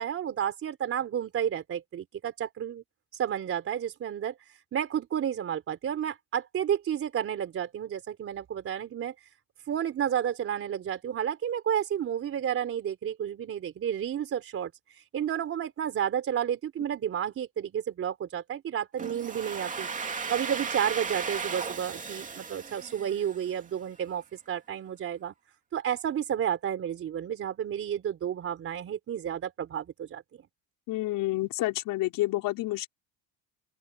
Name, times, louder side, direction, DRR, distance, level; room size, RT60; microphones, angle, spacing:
voice 1, 0.0-2.8 3.1-9.1 9.7-19.9 20.3-25.3 25.7-30.2, right 9 dB, 35° right, 3.8 m, -31 dB
Domestic sounds home sounds, 19.0-23.7, right 5 dB, 20° right, 2.7 m, -36 dB
voice 2, 30.9-32.9, left 17 dB, 60° left, 4.8 m, -29 dB
open air
cardioid pair, 130°, 37 cm